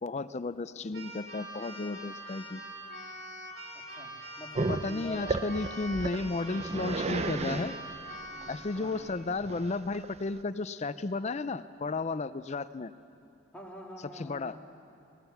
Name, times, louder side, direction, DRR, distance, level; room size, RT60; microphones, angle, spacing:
voice 1, 0.0-2.6 4.7-7.7 8.5-12.9 14.2-14.5, left 3 dB, 30° left, 14 dB, 0.4 m, -33 dB
Keyboard (musical), 0.9-8.7, right 1 dB, 50° right, 2.5 m, -44 dB
voice 2, 3.7-5.5 8.3-9.1 13.5-14.8, left 1 dB, 5° left, -2 dB, 1.8 m, -46 dB
Growling, 4.5-10.4, right 3 dB, 30° right, 0.5 m, -34 dB
20.0 x 19.0 x 7.1 m, 2.6 s
head